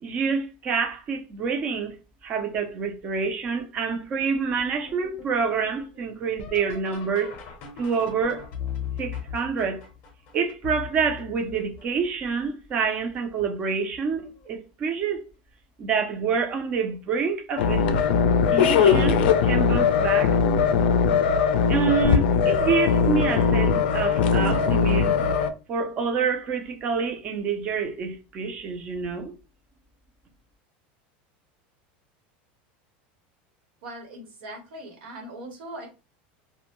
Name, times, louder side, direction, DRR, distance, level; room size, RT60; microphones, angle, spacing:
voice 1, 0.0-2.0 2.2-7.3 7.8-8.5 9.0-9.8 10.3-15.2 15.8-17.9 18.5-20.4 21.7-25.3 25.7-29.3, right 5 dB, 20° right, 0.4 m, -27 dB
sound 1, 4.6-12.3 12.9-13.4 13.9-14.5 15.8-15.9 16.6-17.0 19.1-19.2 21.5-21.6, left 8 dB, 35° left, 0.6 m, -39 dB
sound 2, 17.6-25.5, left 6 dB, 80° left, 0.4 m, -20 dB
voice 2, 33.8-35.9, right 1 dB, 85° right, 1.1 m, -40 dB
2.5 x 2.1 x 2.8 m
supercardioid pair, 180°, 5 cm